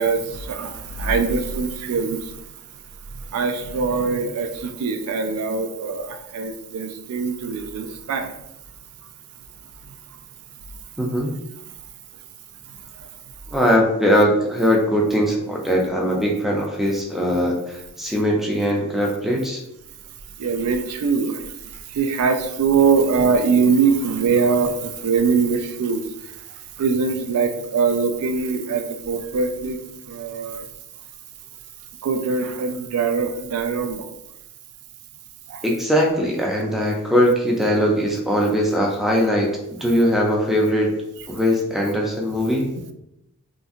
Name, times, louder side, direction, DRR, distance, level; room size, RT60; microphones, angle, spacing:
voice 1, 0.0-2.2 3.3-8.3 20.4-21.4 21.9-26.0 26.8-29.8 30.1-30.6 32.0-34.1 35.5-35.6, right 5 dB, 75° right, 7 dB, 0.3 m, -22 dB
voice 2, 11.0-11.3 13.5-19.6 35.6-39.5 39.8-40.9 41.3-42.7, equal, ahead, -2 dB, 0.4 m, -20 dB
2.7 x 2.5 x 2.4 m, 0.86 s
head